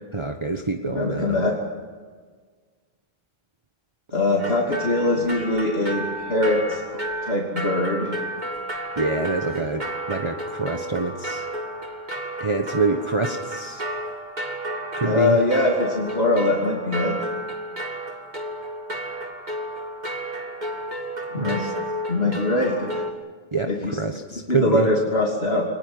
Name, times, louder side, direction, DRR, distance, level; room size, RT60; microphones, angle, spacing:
voice 1, 0.1-1.5 9.0-11.5 12.4-13.8 15.0-15.4 21.4-21.7 23.5-24.9, right 3 dB, 30° right, 4 dB, 1.3 m, -26 dB
voice 2, 0.9-1.6 4.1-8.1 15.0-17.2 21.3-21.6 22.1-22.9 23.7-24.0 24.5-25.7, left 2 dB, 75° left, -1 dB, 3.2 m, -22 dB
sound 1, 4.4-23.1, right 1 dB, 45° right, 2.5 m, -32 dB
24.0 x 19.5 x 9.6 m, 1.5 s
omnidirectional pair, 1.0 m